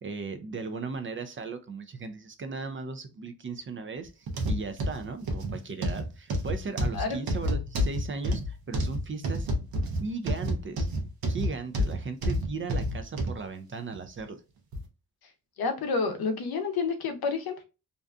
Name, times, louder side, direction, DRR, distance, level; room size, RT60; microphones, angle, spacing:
voice 1, 0.0-9.5 9.9-10.9 11.3-14.4, right 4 dB, 35° right, 0.4 m, -37 dB
sound 1, 4.3-13.4 13.9-14.1 14.7-14.8, equal, 70° right, 0.7 m, -29 dB
voice 2, 15.6-17.6, left 4 dB, 75° left, 0.7 m, -29 dB
2.5 x 2.2 x 2.4 m
cardioid pair, 75°, 37 cm